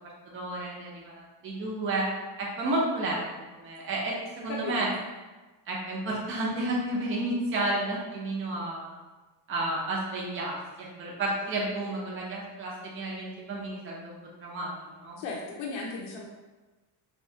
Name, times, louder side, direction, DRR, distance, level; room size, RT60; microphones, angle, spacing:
voice 1, 0.0-2.1 2.4-3.3 3.5-4.9 5.7-8.9 9.5-15.2, right 2 dB, 25° right, -4 dB, 0.6 m, -32 dB
voice 2, 4.5-4.9 15.2-16.3, left 3 dB, 85° left, -2 dB, 0.6 m, -35 dB
2.8 x 2.3 x 2.7 m, 1.2 s
cardioid pair, 135°, 46 cm